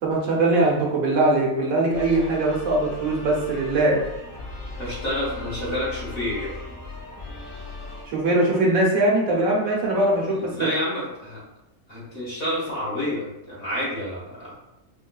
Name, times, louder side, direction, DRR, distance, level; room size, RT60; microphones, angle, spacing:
voice 1, 0.0-4.0 8.1-10.7, right 2 dB, 75° right, -3 dB, 1.3 m, -21 dB
sound 1, 1.9-8.0, left 2 dB, 60° left, 1.9 m, -37 dB
voice 2, 4.8-6.6 10.3-11.4 11.9-14.6, left 1 dB, 40° left, -8 dB, 1.7 m, -29 dB
5.2 x 2.2 x 2.3 m, 0.90 s
omnidirectional pair, 1.5 m